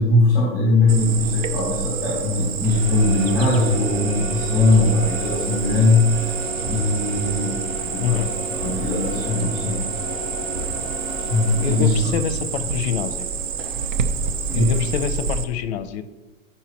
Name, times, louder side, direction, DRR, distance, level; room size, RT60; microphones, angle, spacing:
voice 1, 0.0-6.3 6.7-8.2 8.5-9.8 11.2-11.9 14.5-14.7, left 2 dB, 10° left, -5 dB, 2.2 m, -20 dB
Cricket, 0.9-15.4, right 6 dB, 75° right, 0.8 m, -28 dB
sound 1, 2.6-14.4, left 1 dB, 10° right, 0.3 m, -33 dB
voice 2, 8.0-8.3 11.6-13.3 14.5-16.0, left 9 dB, 55° left, 11 dB, 0.6 m, -26 dB
9.7 x 5.7 x 3.0 m, 1.2 s
supercardioid pair, 165°, 39 cm